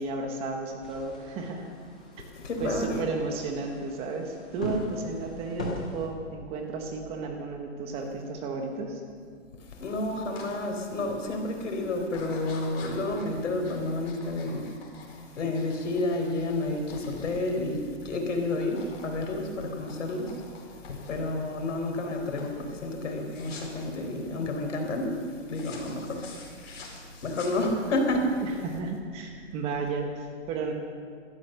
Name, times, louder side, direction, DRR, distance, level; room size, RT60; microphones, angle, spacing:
voice 1, 0.0-1.6 2.6-9.0 28.4-30.7, right 3 dB, 15° right, 3 dB, 1.1 m, -33 dB
sound 1, 0.8-6.1, left 1 dB, 5° left, 0.4 m, -39 dB
voice 2, 2.4-3.0 9.8-14.7 15.3-20.4 20.9-25.2 25.5-26.4 27.2-28.3, left 2 dB, 75° left, 3 dB, 4.1 m, -30 dB
sound 2, 10.3-10.5 11.0-11.4 12.1-18.1 18.4-19.1 19.4-21.3 21.8-22.1 22.4-22.6 23.3-23.9 25.5-28.0, left 4 dB, 55° left, 4.6 m, -48 dB
16.0 x 13.0 x 6.7 m, 2.1 s
hypercardioid pair, 160°, 37 cm